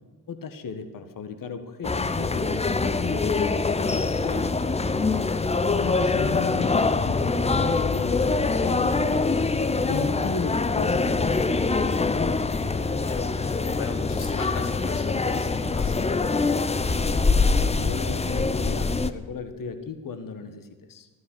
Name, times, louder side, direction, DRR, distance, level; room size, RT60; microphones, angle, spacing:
voice 1, 0.3-2.7 3.0-4.7 5.8-7.3 7.6-11.9 17.7-21.1, left 5 dB, 45° left, 8 dB, 1.7 m, -35 dB
sound 1, 1.8-19.1, left 3 dB, 15° left, 0.8 m, -24 dB
voice 2, 12.6-16.0, left 5 dB, 80° left, 1 dB, 1.5 m, -39 dB
14.0 x 9.7 x 7.9 m, 1.3 s
figure-of-eight pair, 40°, 48 cm